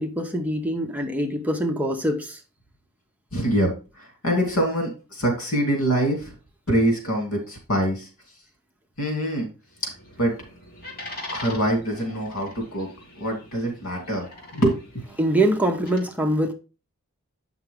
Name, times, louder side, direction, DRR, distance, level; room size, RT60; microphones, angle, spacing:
voice 1, 0.0-2.4 15.2-16.5, right 1 dB, 5° right, 0.8 m, -24 dB
voice 2, 3.3-6.3 6.7-8.1 9.0-9.5 9.8-9.9 10.2-10.4 11.3-12.9 13.2-14.3 14.5-14.8, right 1 dB, 85° left, 2.8 m, -24 dB
sound 1, 9.7-16.0, left 2 dB, 45° left, 2.4 m, -42 dB
8.5 x 5.8 x 3.7 m
head